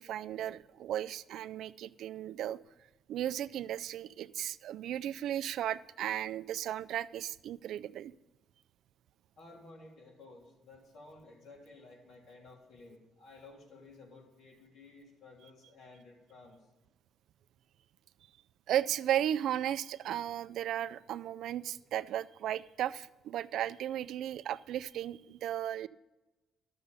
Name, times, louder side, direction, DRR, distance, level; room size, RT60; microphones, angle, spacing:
voice 1, 0.0-2.6 3.1-8.1 18.7-25.9, right 11 dB, 75° right, 14 dB, 0.3 m, -35 dB
voice 2, 9.4-16.7, left 3 dB, 75° left, -1 dB, 3.3 m, -54 dB
12.0 x 6.7 x 6.9 m, 1.1 s
cardioid pair, 120°, 0 cm